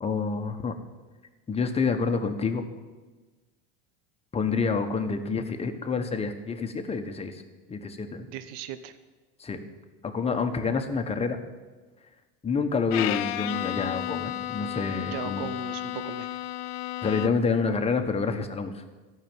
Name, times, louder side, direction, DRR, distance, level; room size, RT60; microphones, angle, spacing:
voice 1, 0.0-0.7 1.5-2.6 4.3-7.4 7.7-8.3 9.4-9.6 10.0-11.4 12.4-15.5 17.0-18.8, left 4 dB, 20° left, 6 dB, 1.3 m, -28 dB
voice 2, 8.3-9.0 15.0-16.4, right 9 dB, 60° right, 12 dB, 0.8 m, -38 dB
Bowed string instrument, 12.9-17.6, left 14 dB, 75° left, 0.7 m, -33 dB
13.5 x 5.9 x 9.2 m, 1.3 s
supercardioid pair, 115°, 29 cm